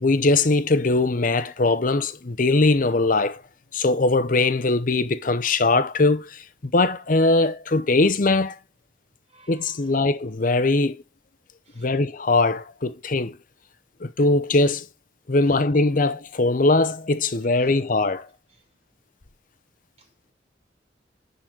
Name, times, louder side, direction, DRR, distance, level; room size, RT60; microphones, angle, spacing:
voice 1, 0.0-3.4 3.7-8.6 9.5-11.0 11.8-13.4 14.0-14.9 15.3-18.3, left 2 dB, 50° left, 0.8 m, -21 dB
voice 2, 9.3-10.1 11.7-11.9 17.5-17.8 20.0-20.3, right 2 dB, 35° right, 3.0 m, -54 dB
10.5 x 4.0 x 6.0 m
head